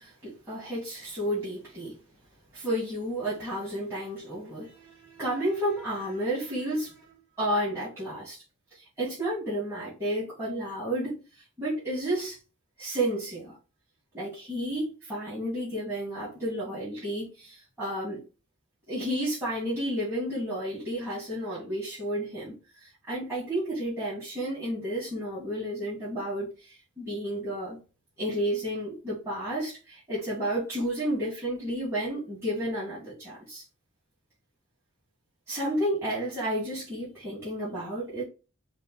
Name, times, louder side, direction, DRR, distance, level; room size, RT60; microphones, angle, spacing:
voice 1, 0.0-2.0 2.5-8.4 8.7-11.2 11.6-12.4 12.8-13.6 14.1-18.2 18.9-27.8 28.2-33.6 35.5-38.2, right 1 dB, 10° right, 1.9 m, -32 dB
4.9 x 2.2 x 4.5 m
head